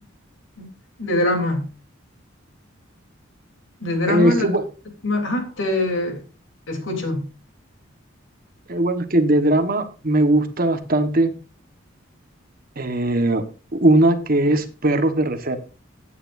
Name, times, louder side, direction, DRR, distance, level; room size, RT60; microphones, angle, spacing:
voice 1, 1.0-1.7 3.8-4.5 5.0-6.2 6.7-7.2, left 1 dB, 65° left, 3 dB, 3.3 m, -23 dB
voice 2, 4.1-4.6 8.7-11.3 12.8-13.4 13.7-15.6, right 1 dB, 45° right, 8 dB, 1.3 m, -19 dB
15.5 x 9.3 x 2.6 m, 0.33 s
head